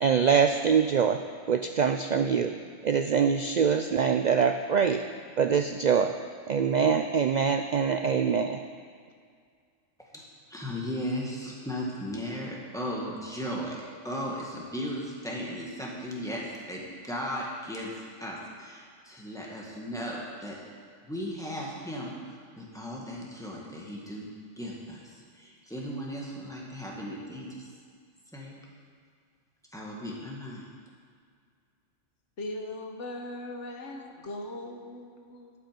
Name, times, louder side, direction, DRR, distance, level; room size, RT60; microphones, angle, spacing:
voice 1, 0.0-1.2 1.5-2.5 2.8-5.0 5.4-6.1 6.5-8.6, right 6 dB, 90° right, 7 dB, 0.3 m, -24 dB
voice 2, 10.5-20.6 21.0-24.3 24.6-27.7 28.3-28.6 29.7-30.6, equal, 5° left, -4 dB, 1.9 m, -36 dB
voice 3, 32.4-35.5, left 1 dB, 65° left, 3 dB, 1.4 m, -39 dB
12.0 x 8.4 x 5.2 m, 2.1 s
omnidirectional pair, 1.3 m